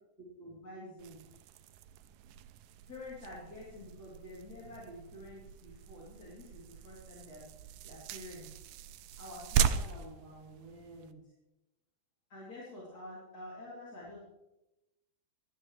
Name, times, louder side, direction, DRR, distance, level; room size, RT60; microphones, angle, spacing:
voice 1, 0.2-1.2 2.9-7.5 7.8-8.6 9.2-11.2 12.3-14.2, left 1 dB, 30° left, -7 dB, 3.5 m, -48 dB
sound 1, 1.0-11.1, right 8 dB, 80° right, 2.2 m, -38 dB
16.0 x 12.5 x 3.3 m, 0.96 s
omnidirectional pair, 3.8 m